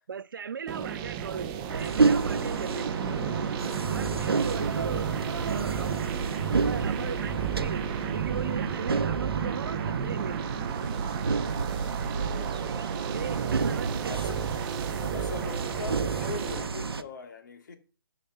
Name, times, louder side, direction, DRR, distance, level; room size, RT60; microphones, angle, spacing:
voice 1, 0.1-3.0 3.9-5.1 5.4-6.0 6.5-7.8 8.1-10.5 13.1-14.3, right 6 dB, 60° right, 0.6 m, -38 dB
sound 1, 0.7-16.7, right 8 dB, 20° right, 0.7 m, -33 dB
sound 2, 1.7-17.0, right 4 dB, 90° right, 0.9 m, -30 dB
voice 2, 12.1-12.6 14.1-14.4 15.1-17.7, left 5 dB, 50° left, 2.3 m, -41 dB
13.0 x 5.2 x 5.6 m
hypercardioid pair, 160°, 12 cm